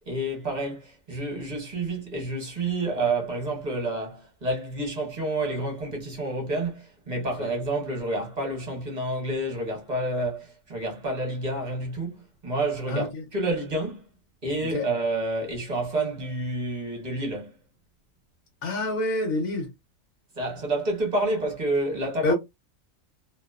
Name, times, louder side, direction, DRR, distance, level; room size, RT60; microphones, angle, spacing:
voice 1, 0.1-14.1 14.4-17.6 20.4-22.3, right 2 dB, 35° right, 1.1 m, -29 dB
voice 2, 12.9-13.2 14.7-14.8 18.6-19.7 22.2-22.3, left 2 dB, 80° left, 1.2 m, -26 dB
2.7 x 2.0 x 2.3 m
omnidirectional pair, 1.4 m